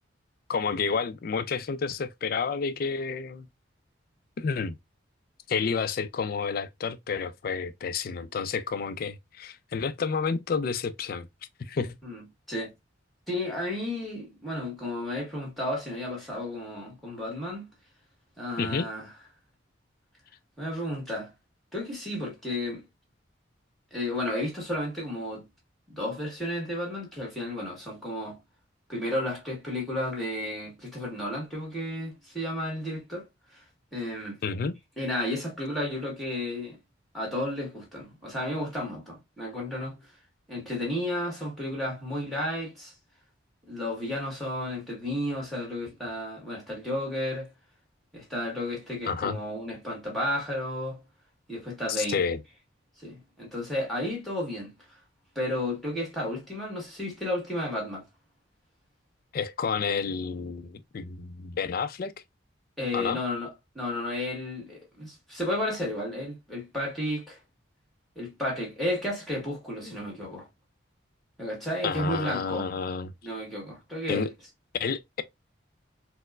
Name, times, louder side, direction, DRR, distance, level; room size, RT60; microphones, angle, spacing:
voice 1, 0.5-3.5 4.4-4.8 5.5-11.3 11.6-12.0 18.6-18.9 34.4-34.7 49.1-49.4 51.9-52.4 59.3-62.1 62.9-63.2 69.8-70.0 71.8-73.1 74.1-74.3 74.8-75.2, left 5 dB, 50° left, 0.3 m, -30 dB
voice 2, 12.0-12.7 13.3-17.7 18.4-19.1 20.6-21.3 21.7-22.8 23.9-25.5 25.9-28.4 28.9-33.3 33.5-33.6 33.9-34.4 35.0-36.8 37.1-40.0 40.5-42.9 43.7-47.5 48.1-51.0 51.5-52.2 53.0-54.7 55.3-58.0 62.8-63.5 63.7-67.4 68.1-70.5 71.4-72.7 73.2-74.3, left 1 dB, ahead, 1.5 m, -32 dB
4.3 x 2.1 x 2.3 m
head